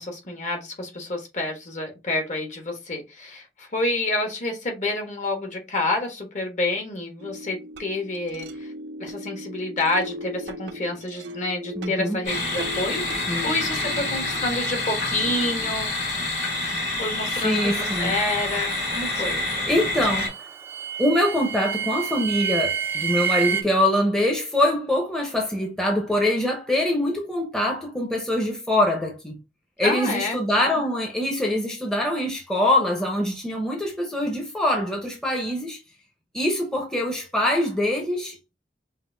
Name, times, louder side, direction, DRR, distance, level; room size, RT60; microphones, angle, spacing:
voice 1, 0.0-8.7 9.0-16.1 17.0-19.5 29.8-30.8, left 2 dB, 45° left, 1.3 m, -28 dB
sound 1, 7.2-15.7, equal, 85° right, 0.6 m, -39 dB
voice 2, 11.8-12.2 13.3-13.5 17.3-18.1 19.7-20.4 21.0-29.4 29.8-35.8 36.3-38.6, left 1 dB, 5° left, 0.8 m, -24 dB
sound 2, 12.2-20.3, left 2 dB, 65° left, 2.3 m, -27 dB
sound 3, 17.6-23.6, right 7 dB, 15° right, 0.4 m, -30 dB
5.5 x 2.7 x 2.7 m
head